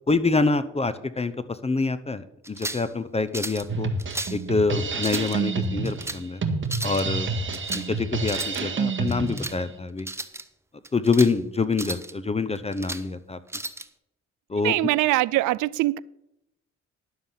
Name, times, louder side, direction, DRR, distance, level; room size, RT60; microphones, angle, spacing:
voice 1, 0.1-3.9 4.3-6.4 6.8-10.1 10.9-13.4 14.5-14.8, left 4 dB, 20° left, 0.7 m, -26 dB
sound 1, 2.4-2.9 3.3-3.7 4.0-4.4 4.9-5.4 5.8-6.2 6.6-7.0 7.5-7.9 8.2-8.6 9.1-9.6 10.0-10.4 10.8-11.3 11.7-12.1 12.5-13.0 13.5-13.9, right 2 dB, 10° right, 0.8 m, -34 dB
Drum kit, 3.7-9.6, right 4 dB, 40° right, 1.6 m, -28 dB
voice 2, 14.6-16.0, right 18 dB, 85° right, 0.5 m, -22 dB
11.5 x 7.4 x 5.7 m
cardioid pair, 90°, 30 cm